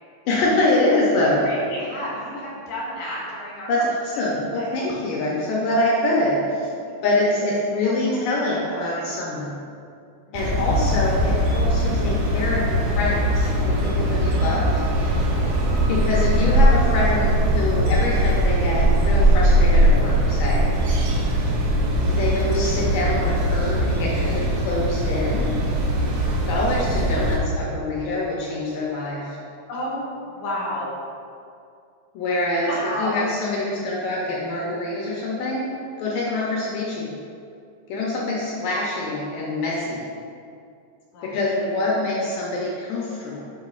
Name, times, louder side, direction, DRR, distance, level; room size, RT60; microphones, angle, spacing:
voice 1, 0.3-1.5 3.7-6.7 7.0-9.5 10.3-14.8 15.9-21.0 22.1-25.5 26.5-29.4 32.1-32.7 33.0-35.7 36.0-37.1 37.9-40.0 41.2-43.4, left 2 dB, 80° left, -4 dB, 2.0 m, -25 dB
voice 2, 1.1-3.7 4.1-4.2 4.6-4.8 6.8-7.0 7.8-9.1 10.3-10.6 15.3-15.6 29.7-30.9 32.6-33.3 41.1-41.5, equal, 60° left, -6 dB, 2.1 m, -33 dB
sound 1, 10.3-27.4, right 1 dB, 80° right, 2.0 m, -20 dB
7.6 x 5.6 x 2.4 m, 2.4 s
omnidirectional pair, 4.6 m